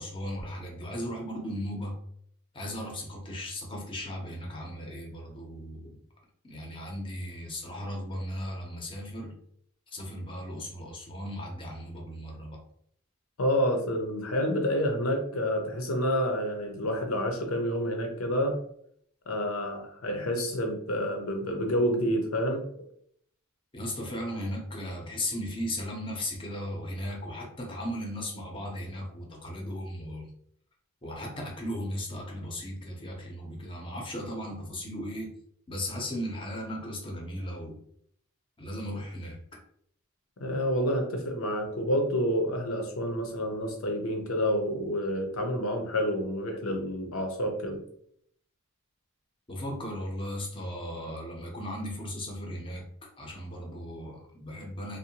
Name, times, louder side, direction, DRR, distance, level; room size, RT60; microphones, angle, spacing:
voice 1, 0.0-2.0 2.5-6.0 6.4-9.4 9.9-12.6 23.7-30.3 31.0-35.3 35.7-37.8 38.6-39.4 49.5-52.8 53.2-55.0, equal, 25° left, 0 dB, 0.6 m, -36 dB
voice 2, 13.4-18.6 19.3-22.6 40.4-47.8, equal, 85° left, 3 dB, 0.7 m, -28 dB
2.6 x 2.1 x 2.8 m, 0.66 s
head